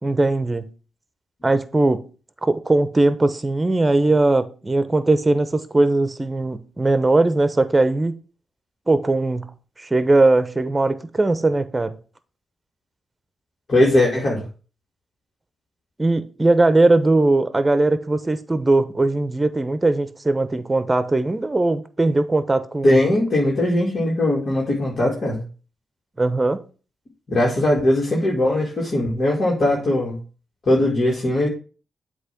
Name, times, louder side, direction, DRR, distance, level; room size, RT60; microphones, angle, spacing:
voice 1, 0.0-0.7 1.4-2.0 2.4-8.2 8.9-9.5 9.8-12.0 16.0-23.0 26.2-26.6, right 2 dB, 25° right, 0.9 m, -19 dB
voice 2, 13.7-14.4 22.8-25.4 27.3-30.2 30.7-31.5, left 1 dB, 55° left, 2.3 m, -19 dB
8.0 x 3.1 x 5.9 m
supercardioid pair, 45°, 0 cm